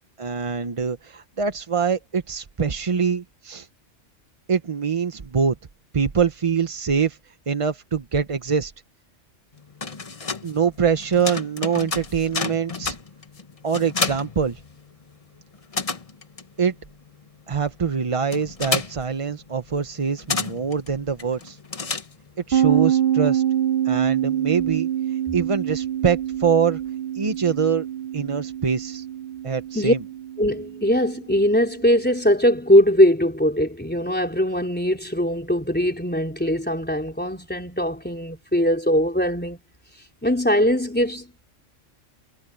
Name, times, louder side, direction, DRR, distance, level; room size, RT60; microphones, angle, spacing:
voice 1, 0.2-3.7 4.5-5.5 5.9-8.7 10.4-13.0 13.6-14.6 16.6-16.7 17.5-21.6 22.5-23.4 23.8-26.8 27.1-27.9 28.1-29.1 29.4-30.0, right 6 dB, 35° right, 0.7 m, -24 dB
sound 1, 9.6-15.2 15.4-22.5, left 4 dB, 30° left, 1.1 m, -31 dB
sound 2, 22.5-32.0, right 10 dB, 50° right, 2.0 m, -26 dB
voice 2, 30.4-39.6 40.2-41.5, equal, 10° left, 3.6 m, -21 dB
omnidirectional pair, 1.3 m